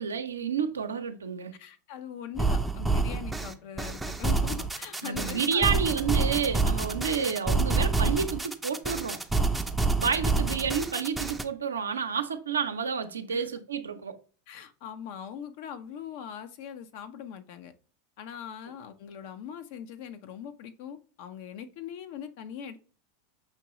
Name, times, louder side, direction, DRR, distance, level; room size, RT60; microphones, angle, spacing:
voice 1, 0.0-1.5 5.0-9.2 10.0-14.1, right 6 dB, 90° right, 0.5 m, -30 dB
voice 2, 1.6-5.7 9.4-9.6 13.3-13.5 14.5-17.7 18.2-22.8, left 8 dB, 60° left, 0.6 m, -41 dB
sound 1, 2.4-11.4, right 3 dB, 5° right, 0.4 m, -27 dB
5.8 x 3.0 x 2.9 m
hypercardioid pair, 95°, 0 cm